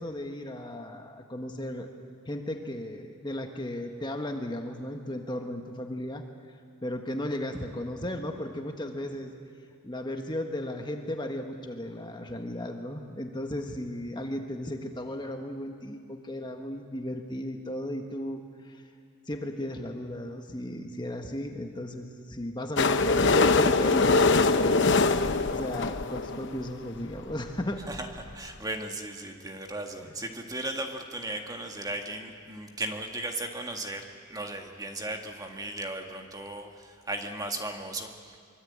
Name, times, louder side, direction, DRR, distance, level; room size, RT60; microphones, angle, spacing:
voice 1, 0.0-1.9 2.3-6.2 6.8-9.3 9.8-18.8 19.3-25.1 25.5-27.8, left 1 dB, 20° left, 4 dB, 1.4 m, -35 dB
sound 1, 22.8-26.6 27.3-27.4 27.6-27.7 27.9-28.0 28.3-28.4, left 3 dB, 55° left, 0.9 m, -23 dB
voice 2, 28.3-38.4, right 2 dB, 15° right, 4 dB, 1.8 m, -36 dB
24.5 x 23.5 x 8.7 m, 2.2 s
head